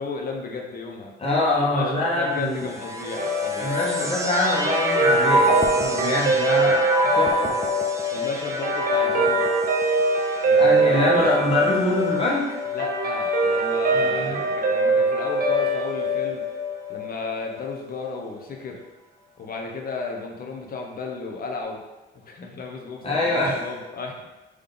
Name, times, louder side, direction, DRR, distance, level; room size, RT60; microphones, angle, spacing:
voice 1, 0.0-1.1 1.5-3.8 8.1-9.4 10.4-11.4 12.7-16.4 16.9-18.8 19.4-21.8 22.1-24.2, left 3 dB, 50° left, 1 dB, 0.8 m, -33 dB
voice 2, 1.2-2.7 3.6-6.8 7.1-7.5 10.6-12.5 13.9-14.4 23.0-23.6, left 2 dB, 30° left, -5 dB, 1.4 m, -24 dB
sound 1, 2.4-13.9 14.7-15.4, right 1 dB, 15° right, 0.5 m, -28 dB
Guitar, 3.2-17.7, right 1 dB, 50° right, 0.8 m, -23 dB
3.9 x 3.1 x 3.5 m, 1.1 s
cardioid pair, 90°, 20 cm